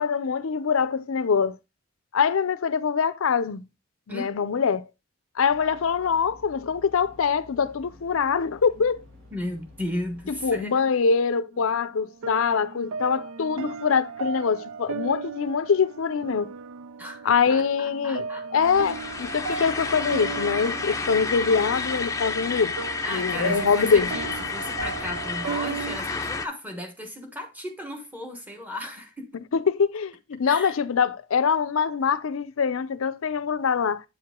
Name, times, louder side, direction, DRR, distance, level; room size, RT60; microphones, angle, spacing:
voice 1, 0.0-1.6 2.1-3.6 4.1-4.9 5.4-9.0 10.4-16.5 17.2-18.2 18.5-22.7 23.1-24.1 29.5-34.0, left 6 dB, 80° left, 0.5 m, -24 dB
sound 1, 5.5-10.6, left 2 dB, 65° right, 2.6 m, -51 dB
voice 2, 9.3-10.9 17.0-18.5 19.5-19.8 23.0-29.4 30.4-30.8, left 1 dB, 10° right, 1.1 m, -35 dB
sound 2, 11.5-26.0, right 5 dB, 85° right, 0.4 m, -36 dB
sound 3, 18.6-26.5, left 4 dB, 15° left, 0.6 m, -31 dB
8.3 x 4.8 x 3.5 m
head